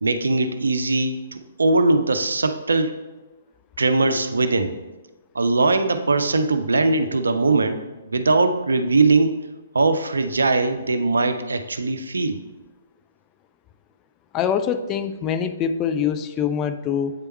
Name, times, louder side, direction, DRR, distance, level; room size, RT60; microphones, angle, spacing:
voice 1, 0.0-2.9 3.8-4.7 5.3-9.4 9.7-12.4, right 3 dB, 75° right, 9 dB, 0.5 m, -20 dB
voice 2, 14.3-17.1, left 8 dB, 25° left, 10 dB, 0.4 m, -24 dB
8.1 x 3.4 x 4.2 m, 1.1 s
figure-of-eight pair, 125°, 0 cm